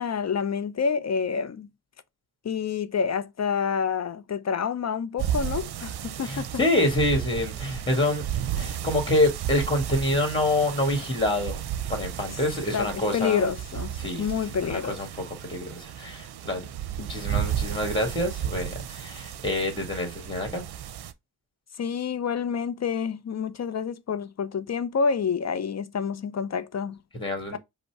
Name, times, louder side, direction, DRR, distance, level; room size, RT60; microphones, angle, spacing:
voice 1, 0.0-1.7 2.4-6.5 12.7-13.9 14.2-15.0 21.8-27.0 27.5-27.6, left 6 dB, 45° left, 0.5 m, -28 dB
sound 1, 5.2-21.1, right 10 dB, 75° right, 0.6 m, -33 dB
voice 2, 6.2-8.3 8.5-11.6 11.9-13.5 14.0-14.3 14.6-15.1 15.4-16.7 17.0-20.6 27.1-27.6, left 1 dB, 10° left, 1.7 m, -26 dB
5.3 x 2.1 x 4.5 m
cardioid pair, 80°, 39 cm